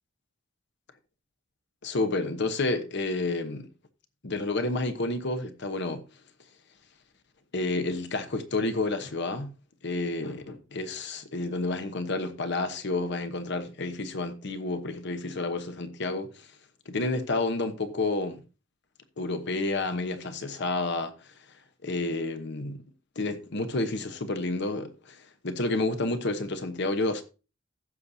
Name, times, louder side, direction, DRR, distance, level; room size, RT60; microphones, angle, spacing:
voice 1, 1.8-3.7 4.2-6.0 7.5-9.5 9.8-16.5 16.9-18.4 19.2-21.3 21.8-22.8 23.2-27.2, left 2 dB, 60° left, 1.0 m, -30 dB
15.5 x 6.5 x 2.7 m
head